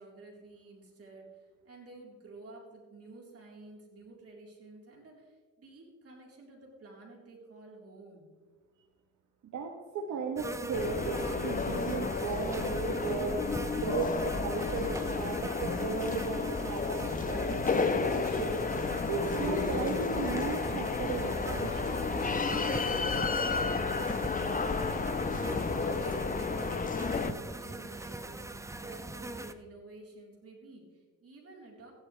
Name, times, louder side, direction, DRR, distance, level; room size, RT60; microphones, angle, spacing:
voice 1, 0.0-8.3 23.0-31.9, right 3 dB, 50° right, -2 dB, 4.0 m, -51 dB
voice 2, 9.4-13.5 13.8-18.6 19.1-22.0, right 5 dB, 70° right, 2 dB, 1.3 m, -36 dB
sound 1, 10.4-29.5, right 2 dB, 10° right, 0.7 m, -42 dB
sound 2, 10.7-27.3, left 4 dB, 25° left, 1.0 m, -32 dB
15.0 x 12.0 x 3.3 m, 1.4 s
cardioid pair, 90°, 30 cm